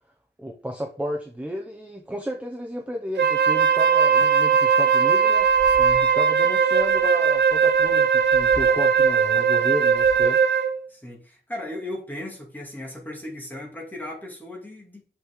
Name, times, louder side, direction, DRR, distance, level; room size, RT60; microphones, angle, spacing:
voice 1, 0.4-5.5 6.0-10.5, equal, 5° right, 0.8 m, -32 dB
Wind instrument woodwind instrument, 3.2-10.8, right 6 dB, 75° right, 0.7 m, -19 dB
sound 1, 3.6-4.3 4.8-5.0 5.3-6.5 6.7-10.4, left 2 dB, 50° left, 2.4 m, -42 dB
voice 2, 5.8-6.1 10.9-15.0, left 1 dB, 10° left, 2.4 m, -36 dB
6.2 x 5.7 x 3.8 m
wide cardioid pair, 175°, 18 cm